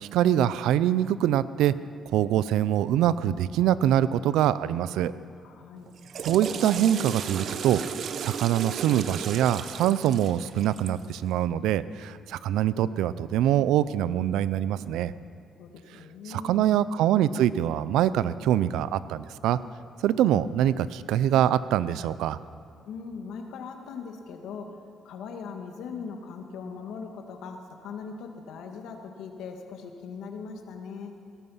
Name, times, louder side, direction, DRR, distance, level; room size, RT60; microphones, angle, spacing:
voice 1, 0.0-1.7 2.1-5.1 6.2-7.8 8.2-15.1 16.3-19.6 20.0-22.4, right 11 dB, 90° right, 16 dB, 0.5 m, -24 dB
voice 2, 5.4-5.9 15.6-16.7 22.8-24.8 25.1-31.1, left 5 dB, 85° left, 4 dB, 1.8 m, -40 dB
Water / Toilet flush, 5.9-11.1, right 7 dB, 60° right, 0.8 m, -35 dB
18.0 x 14.0 x 5.7 m, 2.4 s
cardioid pair, 90°, 0 cm